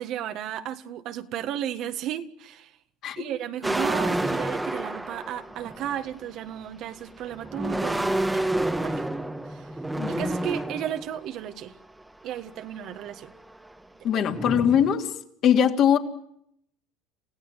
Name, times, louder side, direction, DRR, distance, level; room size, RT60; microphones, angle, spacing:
voice 1, 0.0-2.7 3.2-8.5 8.8-9.0 9.5-9.7 10.1-11.8 12.2-13.3 14.1-14.3, right 11 dB, 50° right, 8 dB, 1.7 m, -34 dB
sound 1, 3.6-6.2 7.1-11.2 12.0-12.2 12.6-13.8 14.3-14.9, right 1 dB, 5° right, 1.4 m, -29 dB
voice 2, 14.0-15.1 15.4-16.0, left 9 dB, 45° left, 4 dB, 3.0 m, -21 dB
28.5 x 16.5 x 9.2 m, 0.74 s
supercardioid pair, 125°, 0 cm